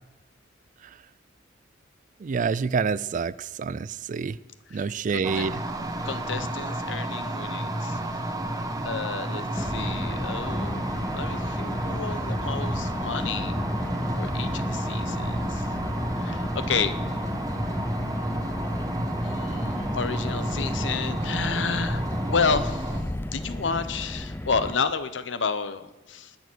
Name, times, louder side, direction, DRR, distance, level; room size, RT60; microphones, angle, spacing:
voice 1, 2.2-4.4 4.7-5.5, right 5 dB, 45° right, 0.3 m, -27 dB
voice 2, 4.7-5.5 6.0-8.2 8.8-13.6 14.2-15.7 16.2-17.0 19.2-23.0 23.3-26.4, left 5 dB, 85° left, 0.9 m, -31 dB
sound 1, 5.2-23.0, right 1 dB, 20° right, 1.1 m, -31 dB
Car, 9.6-24.8, left 1 dB, 10° left, 0.5 m, -33 dB
20.0 x 7.1 x 6.3 m
head